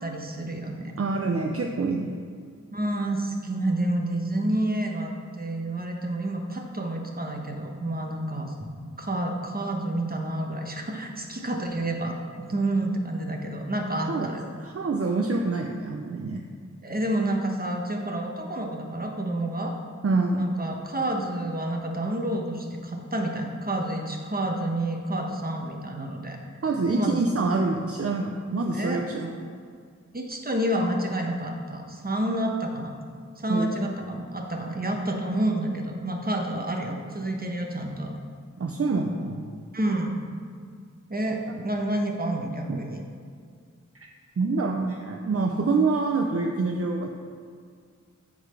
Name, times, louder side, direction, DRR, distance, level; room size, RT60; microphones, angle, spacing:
voice 1, 0.0-0.9 2.7-8.5 9.0-12.2 12.5-14.5 16.8-19.7 20.3-26.4 26.9-27.2 28.7-29.0 30.1-33.0 33.4-38.1 39.7-40.2 41.1-43.0, right 1 dB, 30° right, 2 dB, 1.1 m, -29 dB
voice 2, 1.0-2.1 13.9-14.3 14.6-16.4 20.0-20.5 26.6-29.3 33.5-33.7 38.6-39.4 42.7-42.8 44.0-44.1 44.4-47.1, right 3 dB, 50° right, 2 dB, 0.6 m, -26 dB
8.0 x 4.0 x 6.7 m, 2.1 s
wide cardioid pair, 65°, 30 cm